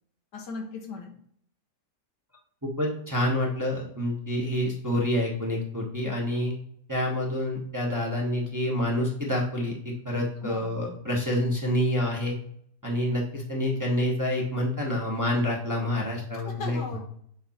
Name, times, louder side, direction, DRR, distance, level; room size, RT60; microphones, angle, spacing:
voice 1, 0.3-1.2 10.4-10.7 16.4-17.2, left 3 dB, 85° left, 3 dB, 1.7 m, -38 dB
voice 2, 2.8-6.5 6.9-12.4 12.8-16.8, left 1 dB, 15° right, -3 dB, 1.0 m, -27 dB
7.7 x 3.4 x 4.2 m, 0.66 s
omnidirectional pair, 1.8 m